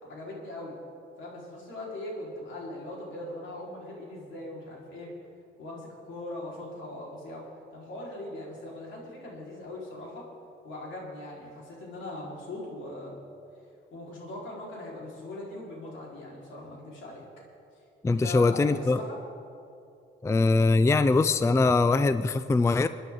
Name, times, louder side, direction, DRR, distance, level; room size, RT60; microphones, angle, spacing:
voice 1, 0.0-0.7 1.2-5.1 5.6-10.3 10.6-13.2 13.9-17.2 18.1-19.2, left 1 dB, 75° left, -3 dB, 4.3 m, -40 dB
voice 2, 18.0-19.0 20.2-22.9, left 3 dB, 15° left, 12 dB, 0.4 m, -22 dB
24.5 x 10.0 x 3.8 m, 2.6 s
cardioid pair, 90°, 20 cm